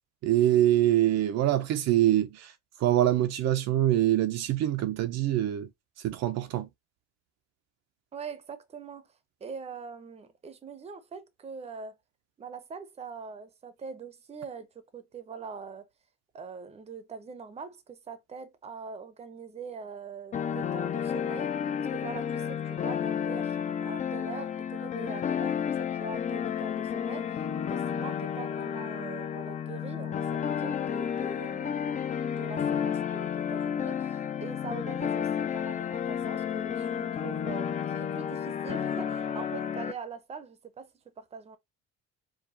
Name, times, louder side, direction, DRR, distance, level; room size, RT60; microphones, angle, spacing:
voice 1, 0.2-2.5 2.8-5.7 6.0-6.7, right 13 dB, 65° right, 0.6 m, -24 dB
voice 2, 8.1-9.1 9.4-12.0 12.4-15.8 16.3-21.5 21.9-41.6, right 5 dB, 20° right, 0.6 m, -43 dB
sound 1, 20.3-39.9, left 8 dB, 25° left, 0.4 m, -31 dB
4.8 x 2.3 x 2.6 m
cardioid pair, 150°, 29 cm